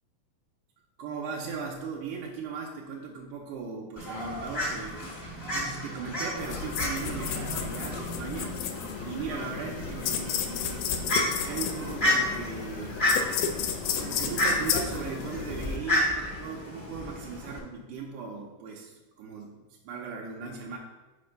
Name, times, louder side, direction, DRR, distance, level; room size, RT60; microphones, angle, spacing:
voice 1, 1.0-5.1 5.5-8.6 9.0-13.1 14.0-19.6 19.8-20.8, right 5 dB, 90° right, -1 dB, 2.2 m, -38 dB
Fowl, 4.0-17.6, left 1 dB, 45° left, 0.3 m, -32 dB
sound 1, 6.4-15.8, left 7 dB, 85° left, 2.1 m, -33 dB
5.2 x 4.2 x 5.1 m, 1.1 s
omnidirectional pair, 3.5 m